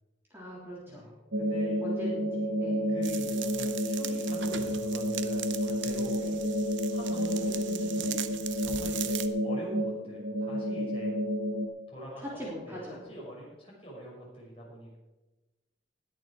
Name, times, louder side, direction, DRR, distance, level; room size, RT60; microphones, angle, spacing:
voice 1, 0.3-1.1 1.8-2.9 6.2-6.4 7.1-8.1 12.2-13.0, equal, 10° right, -6 dB, 3.5 m, -42 dB
sound 1, 1.3-11.7, equal, 60° right, 1.1 m, -30 dB
voice 2, 1.4-1.8 2.9-6.2 6.9-8.2 8.6-11.2 11.9-12.8 13.0-14.9, right 1 dB, 30° left, -4 dB, 5.4 m, -45 dB
sound 2, 3.0-9.3, right 11 dB, 80° right, 0.8 m, -40 dB
20.0 x 6.9 x 4.8 m, 1.1 s
head